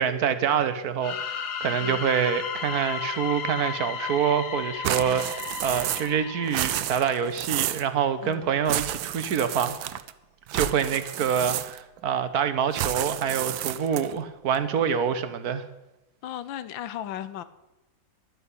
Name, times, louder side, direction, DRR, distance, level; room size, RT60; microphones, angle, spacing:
voice 1, 0.0-9.9 10.5-15.6, right 8 dB, 55° right, 11 dB, 1.3 m, -26 dB
sound 1, 1.0-7.7, left 7 dB, 60° left, 1.5 m, -34 dB
sound 2, 4.8-6.2 6.4-7.9 8.7-10.1 10.5-12.0 12.7-14.2, right 13 dB, 80° right, 1.4 m, -31 dB
voice 2, 16.2-17.4, left 11 dB, 80° left, 14 dB, 1.6 m, -36 dB
12.0 x 9.4 x 8.5 m, 0.97 s
omnidirectional pair, 2.1 m